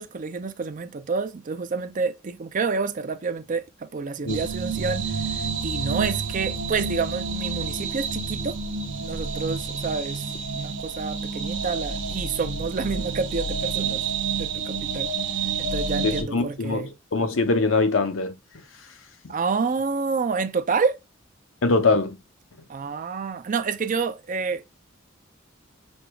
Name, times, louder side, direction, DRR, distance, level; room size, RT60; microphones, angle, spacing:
voice 1, 0.0-5.1 5.4-8.6 8.8-10.3 10.5-14.0 14.4-15.1 15.6-16.9 19.3-21.0 22.7-24.7, right 5 dB, 40° right, 0.5 m, -28 dB
sound 1, 4.3-16.2, right 4 dB, 65° right, 0.8 m, -29 dB
voice 2, 16.0-18.3 21.6-22.2, left 3 dB, 75° left, 0.7 m, -22 dB
6.3 x 2.3 x 3.0 m
head